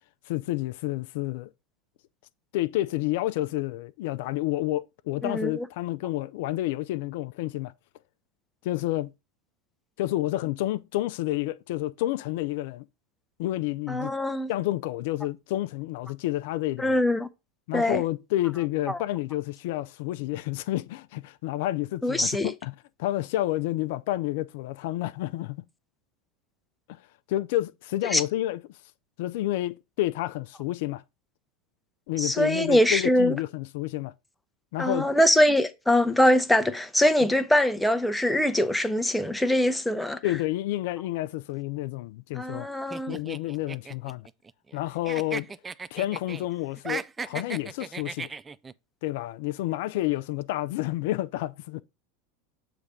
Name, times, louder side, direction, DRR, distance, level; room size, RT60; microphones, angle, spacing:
voice 1, 0.3-1.5 2.5-7.7 8.6-9.1 10.0-12.9 13.4-14.1 14.5-17.0 17.7-25.6 26.9-27.0 27.3-28.6 29.2-31.0 32.1-34.1 34.7-35.1 40.2-42.7 43.1-44.3 44.7-45.5 45.9-48.3 49.0-51.8, left 15 dB, 65° left, 0.3 m, -29 dB
voice 2, 5.2-5.6 13.9-14.5 16.8-17.3 17.7-18.0 18.9-19.0 22.0-22.5 28.1-28.2 32.2-33.4 34.8-40.2 42.4-43.2, left 1 dB, 5° left, 0.7 m, -23 dB
sound 1, 42.9-44.8 45.0-46.4 46.8-48.7, right 5 dB, 20° right, 0.3 m, -36 dB
6.9 x 3.3 x 5.1 m
hypercardioid pair, 95°, 0 cm